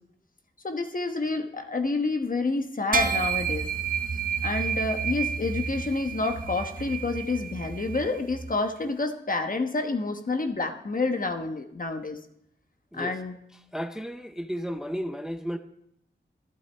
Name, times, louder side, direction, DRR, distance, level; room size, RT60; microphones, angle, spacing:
voice 1, 0.6-3.7 4.4-12.2 12.9-13.4, left 3 dB, 45° left, 6 dB, 1.1 m, -29 dB
sound 1, 2.9-8.5, right 6 dB, 45° right, 0.9 m, -30 dB
voice 2, 13.7-15.6, equal, 5° right, 8 dB, 0.6 m, -33 dB
14.0 x 12.0 x 3.5 m, 0.75 s
wide cardioid pair, 100°, 20 cm